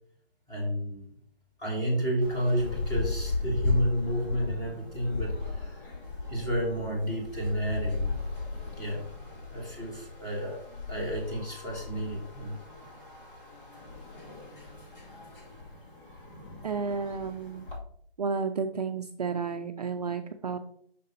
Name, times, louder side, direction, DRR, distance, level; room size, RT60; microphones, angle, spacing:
voice 1, 0.5-1.1 1.6-5.8 6.3-8.2 8.8-9.0 9.5-10.6 10.9-12.6, equal, 10° left, -3 dB, 1.9 m, -31 dB
sound 1, 2.2-17.8, left 3 dB, 60° left, 2.3 m, -36 dB
voice 2, 16.6-17.7 18.2-20.6, right 5 dB, 45° right, 6 dB, 0.4 m, -32 dB
5.8 x 3.8 x 5.2 m, 0.62 s
figure-of-eight pair, 145°, 30 cm